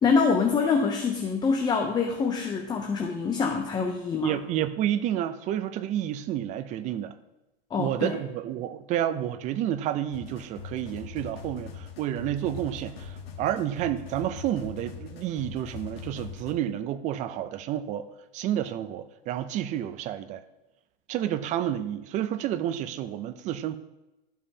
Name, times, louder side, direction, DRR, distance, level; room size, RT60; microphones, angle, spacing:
voice 1, 0.0-4.4 7.7-8.2, left 5 dB, 15° left, 3 dB, 0.6 m, -25 dB
voice 2, 4.2-7.1 7.8-18.1 18.3-20.4 21.1-23.8, right 11 dB, 25° right, 12 dB, 0.4 m, -30 dB
sound 1, 10.1-16.5, left 6 dB, 75° left, 1.5 m, -42 dB
13.0 x 5.5 x 2.8 m, 0.99 s
hypercardioid pair, 130°, 31 cm